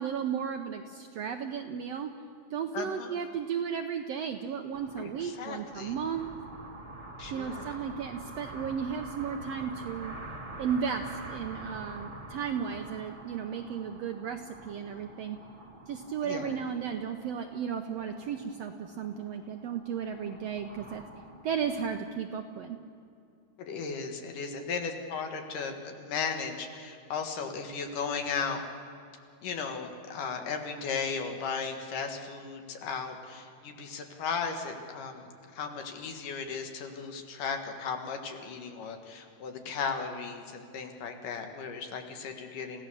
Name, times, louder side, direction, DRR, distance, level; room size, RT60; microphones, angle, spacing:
voice 1, 0.0-2.1 2.5-6.3 7.3-10.2 10.6-15.4 15.9-21.0 21.4-22.8, right 7 dB, 75° right, 6 dB, 1.5 m, -34 dB
voice 2, 2.7-3.1 5.0-5.9 7.2-7.8 16.2-16.6 23.6-28.6 29.4-42.8, left 5 dB, 75° left, 5 dB, 3.2 m, -36 dB
sound 1, 4.7-22.0, right 2 dB, 25° right, 1.8 m, -46 dB
29.5 x 16.5 x 7.0 m, 2.5 s
omnidirectional pair, 3.8 m